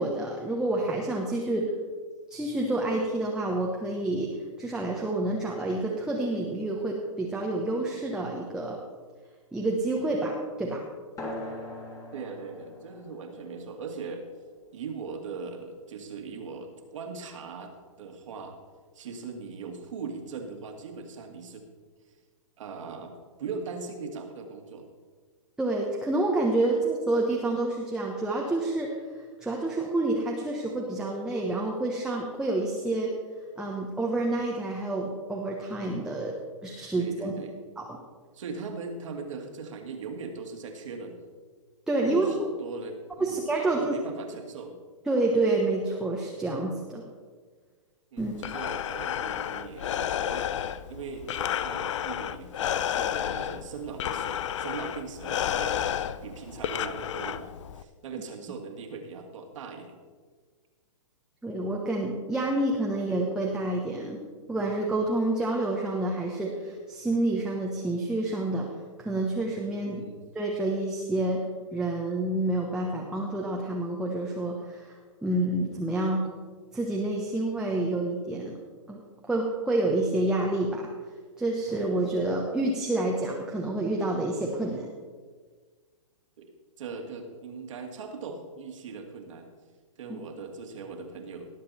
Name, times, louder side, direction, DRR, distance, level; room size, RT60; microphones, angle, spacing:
voice 1, 0.0-1.7 2.3-8.8 9.5-10.8 25.6-28.9 29.4-33.1 33.6-36.3 36.6-37.3 37.8-37.9 41.9-42.2 43.2-44.0 45.1-47.0 48.2-48.4 61.4-64.2 64.5-68.7 69.0-70.0 70.3-71.4 71.7-76.2 76.7-78.5 78.9-79.0 79.3-80.9 81.4-84.9 90.1-90.2, right 2 dB, 5° right, -2 dB, 1.3 m, -28 dB
sound 1, 11.2-16.2, left 1 dB, 20° left, 2.3 m, -43 dB
voice 2, 12.1-14.3 14.7-17.7 18.0-18.6 18.9-21.7 22.6-23.1 23.4-24.9 36.9-37.5 38.3-41.2 42.0-44.8 48.1-60.0 69.8-70.2 86.4-86.5 86.8-89.5 90.0-91.5, right 4 dB, 65° right, 3 dB, 2.4 m, -40 dB
Breathing, 48.2-57.8, left 10 dB, 65° left, 0.6 m, -31 dB
19.0 x 7.7 x 4.3 m, 1.5 s
hypercardioid pair, 130°, 17 cm